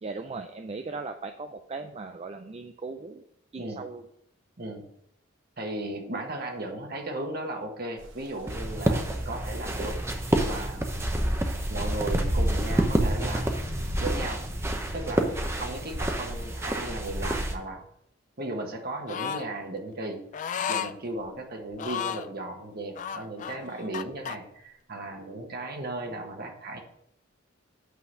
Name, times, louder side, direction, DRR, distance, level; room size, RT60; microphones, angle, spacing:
voice 1, 0.0-3.2 3.5-4.1, right 3 dB, 30° right, 6 dB, 0.4 m, -38 dB
voice 2, 5.6-10.0 10.4-10.9 11.7-13.6 14.0-14.4 14.9-17.8 18.4-20.2 20.7-26.8, right 2 dB, 50° right, 3 dB, 1.4 m, -36 dB
sound 1, 8.0-17.4, equal, 75° right, 1.2 m, -39 dB
sound 2, 8.5-17.6, right 1 dB, 15° right, 0.8 m, -28 dB
sound 3, 19.1-19.5 20.3-20.9 21.7-22.3 22.9-24.4, left 8 dB, 40° left, 0.3 m, -33 dB
8.2 x 3.9 x 6.3 m, 0.74 s
head